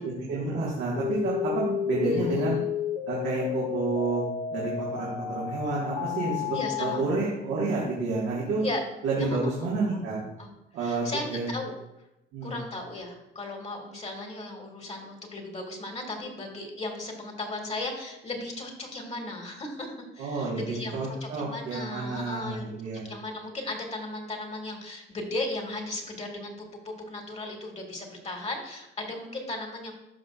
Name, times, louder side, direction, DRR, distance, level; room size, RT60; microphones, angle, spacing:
voice 1, 0.0-2.5 3.1-4.2 4.5-8.6 9.0-10.2 10.7-11.5 12.3-12.6 20.2-23.0, right 3 dB, 85° right, -6 dB, 1.8 m, -29 dB
sound 1, 1.0-7.0, left 9 dB, 75° left, 1.1 m, -31 dB
voice 2, 2.0-2.5 6.5-7.0 8.6-8.8 9.3-9.4 9.9-10.0 10.4-10.5 10.8-11.7 12.4-19.9 20.1-29.9, left 2 dB, 35° left, 2 dB, 1.9 m, -36 dB
13.5 x 5.3 x 2.4 m, 0.90 s
cardioid pair, 90°, 20 cm